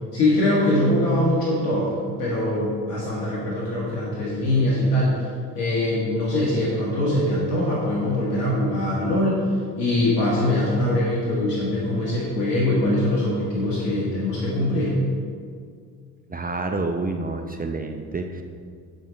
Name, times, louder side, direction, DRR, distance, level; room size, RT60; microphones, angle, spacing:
voice 1, 0.1-1.9 2.2-5.2 5.6-9.4 9.8-14.9, left 1 dB, 75° left, -5 dB, 1.8 m, -22 dB
voice 2, 16.3-18.4, right 3 dB, 20° right, 5 dB, 0.7 m, -28 dB
10.0 x 5.3 x 5.7 m, 2.1 s
hypercardioid pair, 55°, 48 cm